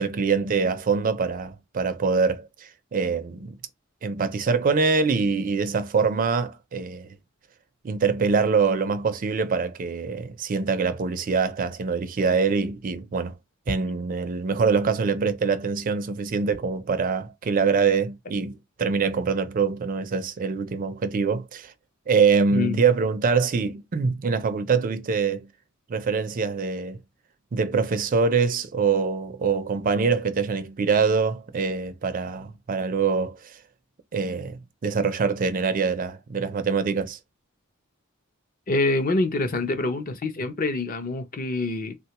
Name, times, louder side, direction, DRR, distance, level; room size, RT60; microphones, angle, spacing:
voice 1, 0.0-3.6 4.0-7.2 7.8-13.4 13.7-18.5 18.8-21.7 22.1-25.5 25.9-27.0 27.5-33.6 34.1-37.2, right 5 dB, 40° right, 0.4 m, -24 dB
voice 2, 38.7-42.0, left 2 dB, 40° left, 0.5 m, -26 dB
3.4 x 2.2 x 2.8 m
head